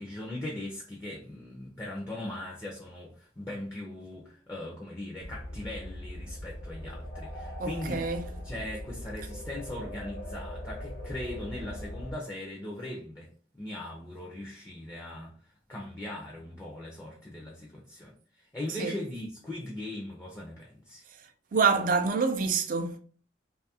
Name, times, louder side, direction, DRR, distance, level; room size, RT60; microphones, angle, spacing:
voice 1, 0.0-15.4 15.7-21.0, left 1 dB, 15° left, 0.4 m, -39 dB
sound 1, 5.2-12.1, left 1 dB, 60° left, 0.8 m, -40 dB
voice 2, 7.6-8.3 18.8-18.9 21.5-23.0, right 5 dB, 45° right, 0.4 m, -26 dB
2.6 x 2.4 x 2.7 m
head